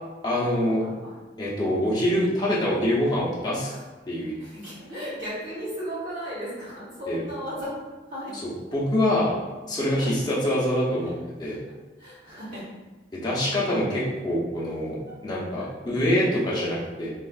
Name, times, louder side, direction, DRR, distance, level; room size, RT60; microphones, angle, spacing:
voice 1, 0.2-0.8 1.4-3.7 4.1-4.3 7.1-7.2 8.4-9.3 9.7-11.1 11.4-11.6 13.2-15.0 15.2-17.1, left 1 dB, 20° left, -7 dB, 0.6 m, -25 dB
voice 2, 0.8-1.2 3.6-3.8 4.2-7.7 8.1-8.4 10.0-10.1 11.4-11.6 12.0-12.7 15.6-15.7, equal, 45° right, -9 dB, 1.3 m, -36 dB
3.3 x 2.4 x 2.3 m, 1.2 s
head